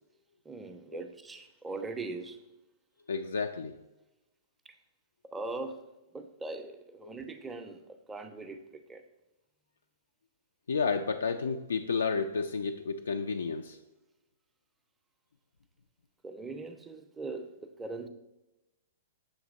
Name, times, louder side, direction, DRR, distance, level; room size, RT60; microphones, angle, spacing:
voice 1, 0.5-2.4 5.3-5.8 6.1-7.8 8.1-9.0 16.2-18.1, right 3 dB, 10° right, 7 dB, 0.4 m, -40 dB
voice 2, 3.1-3.8 10.7-13.8, left 5 dB, 90° left, 6 dB, 0.3 m, -31 dB
7.1 x 2.8 x 5.2 m, 0.99 s
hypercardioid pair, 135°, 0 cm